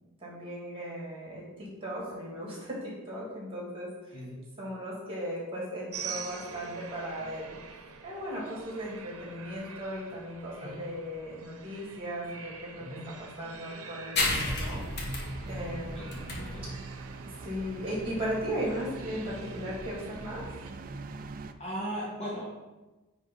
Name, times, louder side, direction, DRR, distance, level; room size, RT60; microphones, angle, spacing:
voice 1, 0.2-4.2 4.6-7.5 8.0-14.8 15.4-16.3 16.6-16.7 17.4-20.5, equal, 25° right, -4 dB, 2.4 m, -37 dB
sound 1, 5.9-20.7, right 5 dB, 70° right, 0.7 m, -46 dB
sound 2, 14.2-21.3, left 2 dB, 50° left, 1.3 m, -35 dB
sound 3, 14.7-21.5, right 3 dB, 40° right, 0.4 m, -43 dB
voice 2, 15.9-16.7 21.6-22.5, equal, 25° left, -4 dB, 1.2 m, -38 dB
9.7 x 3.7 x 4.0 m, 1.1 s
head